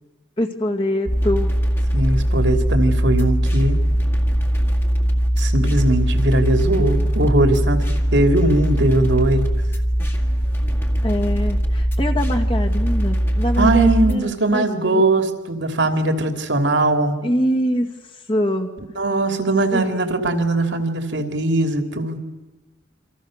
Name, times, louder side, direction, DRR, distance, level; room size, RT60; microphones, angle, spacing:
voice 1, 0.4-1.6 11.0-15.0 17.2-17.9 18.3-18.7 19.7-20.0, equal, 25° left, 3 dB, 2.0 m, -24 dB
sound 1, 1.1-14.1, equal, 10° left, 2.0 m, -20 dB
voice 2, 1.9-3.8 5.4-7.8 8.1-9.5 13.6-17.2 19.0-22.2, right 2 dB, 70° right, 6 dB, 2.9 m, -20 dB
28.5 x 25.5 x 6.6 m, 1.2 s
head